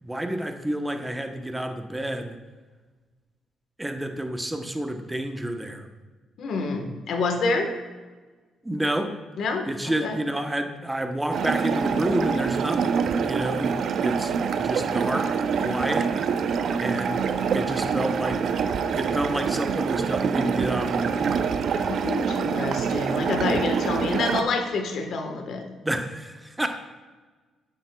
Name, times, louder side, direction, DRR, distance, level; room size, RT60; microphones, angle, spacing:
voice 1, 0.0-2.4 3.8-5.9 8.6-9.1 9.7-15.3 15.6-16.1 16.8-18.6 18.9-21.4 25.8-26.7, right 1 dB, 10° right, 5 dB, 0.9 m, -29 dB
voice 2, 6.4-7.7 9.4-9.6 10.0-10.2 21.9-25.7, left 3 dB, 70° left, 4 dB, 1.2 m, -27 dB
sound 1, 11.3-24.4, right 6 dB, 65° right, 0.4 m, -25 dB
10.0 x 7.7 x 2.3 m, 1.3 s
cardioid pair, 90°, 0 cm